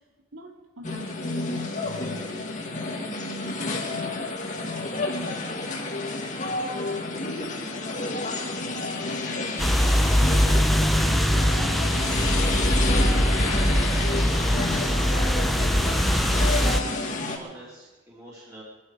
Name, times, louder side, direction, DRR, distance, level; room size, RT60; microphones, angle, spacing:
voice 1, 0.3-2.5 2.9-4.6, right 1 dB, 70° right, 2 dB, 2.3 m, -42 dB
sound 1, 0.8-17.4, left 2 dB, 35° left, 1.9 m, -30 dB
sound 2, 9.6-16.8, equal, ahead, 0.5 m, -22 dB
voice 2, 11.5-12.0 13.6-15.8 17.3-18.6, right 1 dB, 15° right, -7 dB, 3.0 m, -46 dB
22.5 x 12.0 x 4.9 m, 1.2 s
head